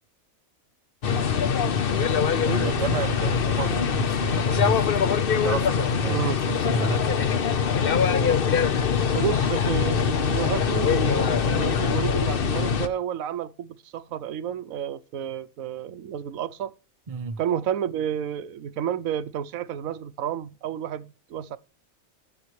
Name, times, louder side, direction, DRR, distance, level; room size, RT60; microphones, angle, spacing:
sound 1, 1.0-12.9, left 6 dB, 50° left, 0.9 m, -23 dB
voice 1, 2.4-4.9 5.4-7.1 17.1-17.4, right 6 dB, 35° right, 0.6 m, -31 dB
voice 2, 6.1-6.4 9.1-16.7 17.4-21.6, right 9 dB, 85° right, 1.1 m, -30 dB
13.5 x 9.7 x 3.1 m
omnidirectional pair, 1.4 m